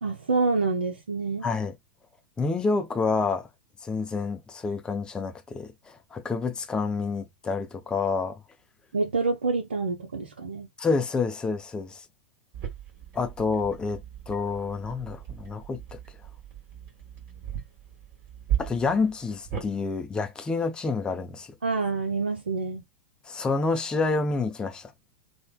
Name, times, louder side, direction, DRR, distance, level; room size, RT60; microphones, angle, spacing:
voice 1, 0.0-1.5 8.9-10.7 21.6-22.8, right 3 dB, 75° right, 0.5 m, -27 dB
voice 2, 1.4-1.8 2.4-3.5 3.8-8.3 10.8-12.0 13.1-16.0 18.6-21.5 23.3-24.9, left 4 dB, 15° left, 0.5 m, -28 dB
sound 1, 12.5-19.7, right 10 dB, 35° right, 1.3 m, -36 dB
3.2 x 2.0 x 2.2 m
figure-of-eight pair, 95°, 6 cm